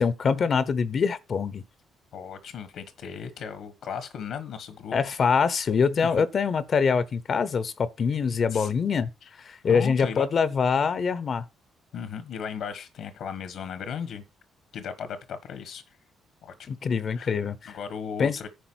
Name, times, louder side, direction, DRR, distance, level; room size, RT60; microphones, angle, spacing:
voice 1, 0.0-1.6 4.9-9.1 9.4-11.4 16.7-17.8 18.2-18.4, left 6 dB, 50° left, 0.8 m, -24 dB
voice 2, 2.1-5.0 6.0-6.1 8.5-8.7 9.2-9.3 9.7-10.3 11.9-14.2 14.7-16.0 16.4-16.8 17.1-17.3 17.7-18.5, left 7 dB, 75° left, 1.3 m, -36 dB
10.5 x 4.8 x 6.2 m
cardioid pair, 90°, 0 cm